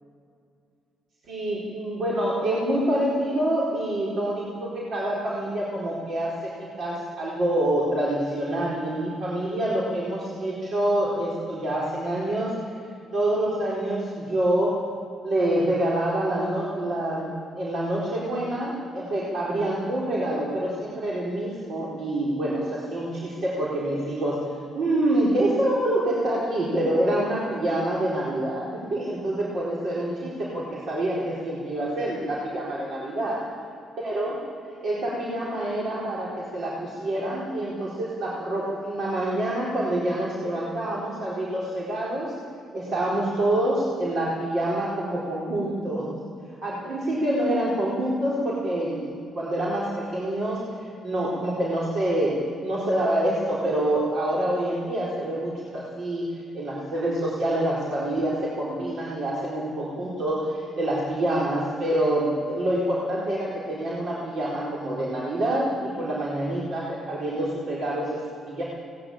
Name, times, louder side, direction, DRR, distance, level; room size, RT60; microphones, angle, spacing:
voice 1, 1.3-12.5 13.1-14.8 15.2-24.5 24.7-33.4 34.0-34.4 34.8-42.3 42.7-46.1 46.6-50.6 51.0-68.6, right 1 dB, 65° right, -6 dB, 4.4 m, -26 dB
19.5 x 18.5 x 8.8 m, 2.4 s
cardioid pair, 90°, 0 cm